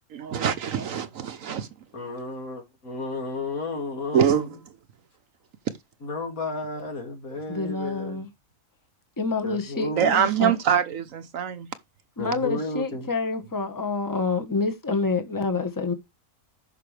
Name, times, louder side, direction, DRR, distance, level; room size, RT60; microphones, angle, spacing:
voice 1, 0.1-1.7 4.1-4.4 9.9-11.7, right 8 dB, 65° right, 1.1 m, -24 dB
voice 2, 1.9-4.6 6.0-8.2 9.4-10.2 12.2-13.1, left 2 dB, 65° left, 2.8 m, -32 dB
voice 3, 7.5-8.3 9.2-10.5 12.2-15.9, left 4 dB, 15° left, 1.2 m, -27 dB
14.5 x 5.8 x 3.3 m
omnidirectional pair, 1.6 m